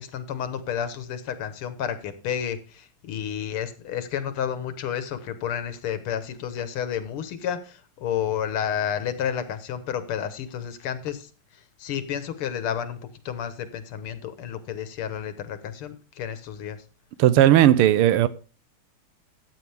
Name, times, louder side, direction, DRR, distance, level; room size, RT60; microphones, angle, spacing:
voice 1, 0.0-11.3 11.8-13.0 13.3-16.8, left 9 dB, 80° left, 2.1 m, -31 dB
voice 2, 17.2-18.3, right 12 dB, 90° right, 1.6 m, -16 dB
14.0 x 8.7 x 3.4 m
omnidirectional pair, 2.4 m